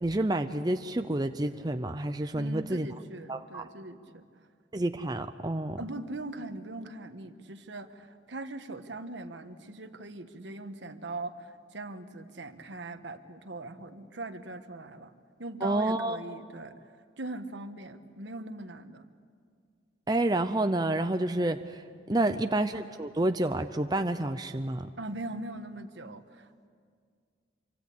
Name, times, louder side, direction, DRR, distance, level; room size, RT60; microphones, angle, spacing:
voice 1, 0.0-2.9 3.3-3.7 4.7-5.8 15.6-16.2 20.1-21.8 22.1-24.9, right 1 dB, 20° right, 7 dB, 0.6 m, -29 dB
voice 2, 2.3-4.2 5.8-15.1 15.4-16.8 17.2-19.0 22.1-22.5 25.0-26.7, right 2 dB, 70° right, 9 dB, 1.4 m, -41 dB
26.5 x 24.5 x 8.6 m, 2.1 s
head